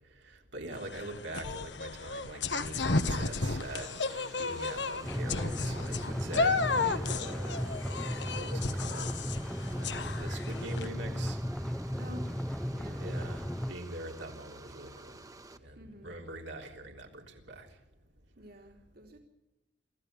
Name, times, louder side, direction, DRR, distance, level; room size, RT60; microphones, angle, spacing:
voice 1, 0.2-7.6 8.4-9.3 9.7-11.4 13.0-15.1 15.6-17.7, right 1 dB, 80° right, 3.6 m, -43 dB
sound 1, 0.7-10.9, left 3 dB, 70° left, 1.4 m, -33 dB
sound 2, 2.9-15.6, right 2 dB, 20° right, 1.4 m, -51 dB
sound 3, 5.0-13.7, equal, 5° left, 0.6 m, -35 dB
voice 2, 11.9-12.4 12.7-13.1 15.7-16.2 18.3-19.2, equal, 55° right, 3.0 m, -49 dB
26.5 x 15.0 x 6.9 m
head